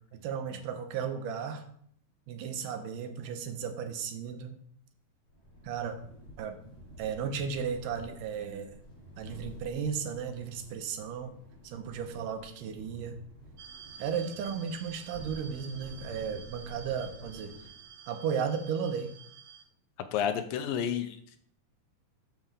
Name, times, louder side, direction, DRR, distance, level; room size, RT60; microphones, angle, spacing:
voice 1, 0.1-1.7 2.3-4.6 5.6-6.0 6.4-6.6 7.0-8.8 9.2-11.3 11.6-13.2 14.0-17.5 18.1-19.2, right 7 dB, 80° right, 7 dB, 2.4 m, -35 dB
sound 1, 5.3-18.0, equal, 40° left, 3.8 m, -50 dB
sound 2, 13.6-19.6, right 7 dB, 60° right, 2.2 m, -50 dB
voice 2, 20.0-21.4, left 8 dB, 90° left, 9 dB, 2.5 m, -31 dB
9.2 x 4.3 x 6.7 m, 0.65 s
omnidirectional pair, 3.9 m